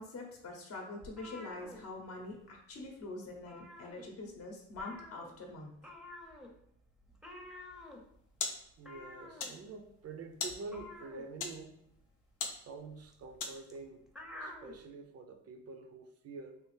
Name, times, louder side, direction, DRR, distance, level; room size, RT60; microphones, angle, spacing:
voice 1, 0.0-5.7, left 2 dB, 50° left, 1 dB, 0.7 m, -45 dB
sound 1, 1.0-2.5 2.8-3.0 3.3-4.4 4.7-14.8, left 2 dB, ahead, 0.6 m, -51 dB
sound 2, 7.8-13.9, left 5 dB, 85° left, 0.6 m, -44 dB
voice 2, 8.8-11.8 12.5-14.0 14.4-16.6, right 3 dB, 55° right, 6 dB, 0.5 m, -47 dB
3.4 x 2.4 x 3.2 m, 0.74 s
cardioid pair, 90°, 30 cm